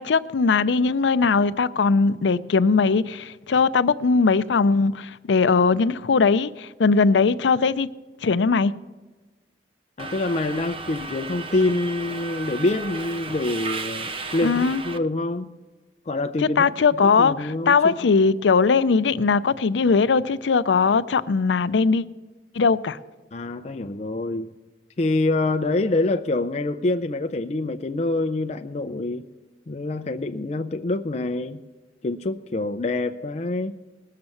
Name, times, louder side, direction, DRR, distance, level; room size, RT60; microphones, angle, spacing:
voice 1, 0.0-7.9 8.2-8.7 14.4-14.8 16.6-22.0 22.5-23.0, left 4 dB, 90° left, 0.5 m, -20 dB
voice 2, 10.0-15.5 16.1-16.7 17.0-18.1 23.3-24.5 25.0-29.3 29.7-31.6 32.0-33.8, left 2 dB, 40° left, 0.4 m, -26 dB
Subway metro underground, 10.0-15.0, right 3 dB, 30° right, 0.5 m, -34 dB
20.0 x 6.6 x 7.0 m
head